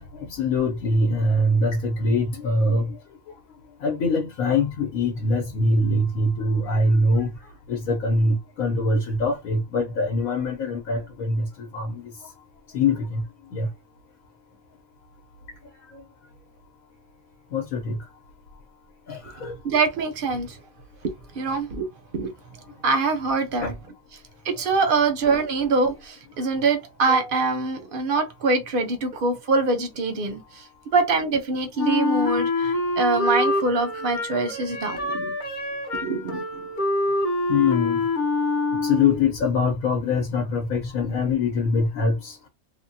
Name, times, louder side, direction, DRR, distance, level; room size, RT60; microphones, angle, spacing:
voice 1, 0.1-3.0 3.8-7.3 7.7-11.5 11.7-12.0 12.7-13.2 13.5-13.7 15.9-16.0 17.5-18.0 19.1-19.6 23.6-23.7 37.5-38.1 38.8-42.4, left 2 dB, 80° left, 1.2 m, -23 dB
voice 2, 19.4-20.6 21.3-21.9 22.1-22.3 22.8-23.7 24.4-30.6 30.9-35.3 36.0-36.7, right 3 dB, 50° right, 0.7 m, -24 dB
Wind instrument woodwind instrument, 31.8-39.3, left 2 dB, 45° left, 0.7 m, -26 dB
3.4 x 2.2 x 2.7 m
omnidirectional pair, 1.5 m